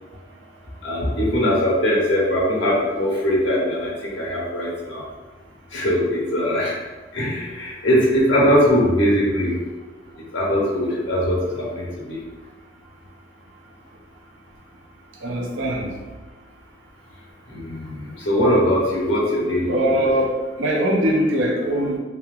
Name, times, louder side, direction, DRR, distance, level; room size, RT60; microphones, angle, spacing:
voice 1, 0.8-5.0 5.7-6.7 7.1-9.6 10.3-12.2 17.5-20.1, equal, 85° left, -5 dB, 1.0 m, -21 dB
voice 2, 15.2-15.9 19.7-20.3 20.6-22.0, equal, 80° right, -1 dB, 0.6 m, -21 dB
3.0 x 2.8 x 2.4 m, 1.3 s
head